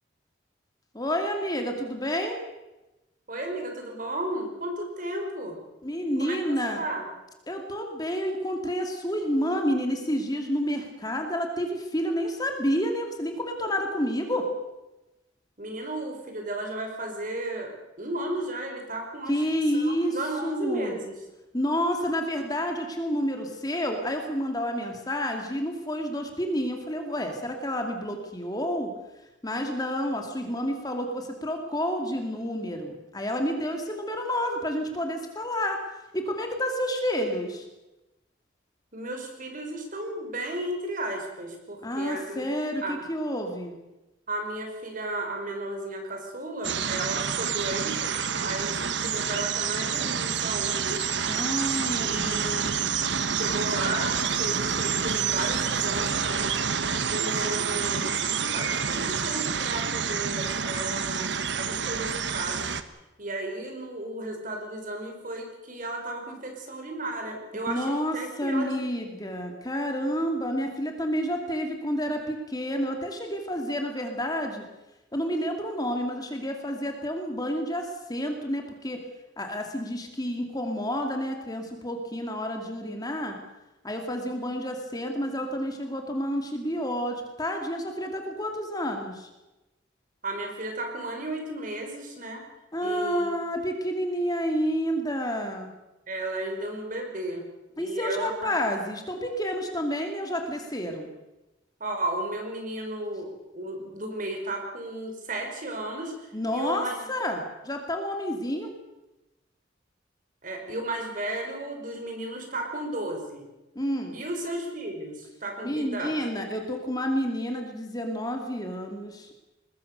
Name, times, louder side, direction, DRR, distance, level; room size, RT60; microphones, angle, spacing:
voice 1, 0.9-2.4 5.8-6.8 7.5-14.5 19.3-20.1 20.4-20.9 21.5-28.9 29.4-35.8 36.1-37.7 41.8-43.7 51.3-52.9 67.7-74.6 75.1-79.0 79.4-83.4 83.8-89.3 92.7-95.7 97.8-101.1 106.3-108.7 113.7-114.1 115.6-119.4, equal, 20° left, 3 dB, 2.5 m, -29 dB
voice 2, 3.3-5.6 6.2-7.1 15.6-17.7 18.0-19.3 19.7-21.1 38.9-42.5 42.8-43.0 44.3-48.2 48.4-51.0 52.0-52.5 53.3-56.5 56.9-58.1 58.5-62.6 63.2-68.9 90.2-92.4 92.8-93.3 96.1-97.4 97.8-98.6 101.8-107.0 110.4-113.4 114.1-116.2, right 1 dB, 45° right, 3 dB, 5.3 m, -34 dB
sound 1, 46.6-62.8, right 6 dB, 65° right, 1.3 m, -28 dB
23.0 x 20.5 x 6.8 m, 1.0 s
head